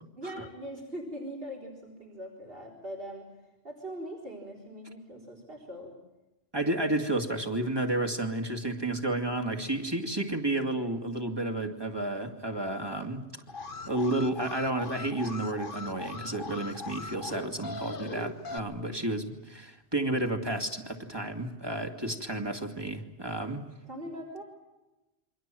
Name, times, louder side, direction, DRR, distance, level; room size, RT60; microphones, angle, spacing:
voice 1, 0.2-3.3 3.6-5.9 18.7-19.2 23.8-24.4, equal, 60° right, -3 dB, 4.3 m, -41 dB
voice 2, 6.5-13.2 13.9-23.6, right 1 dB, 25° right, 4 dB, 2.3 m, -31 dB
Alarm, 13.5-18.6, left 3 dB, 55° left, 1.4 m, -40 dB
28.5 x 24.0 x 7.7 m, 1.0 s
omnidirectional pair, 1.1 m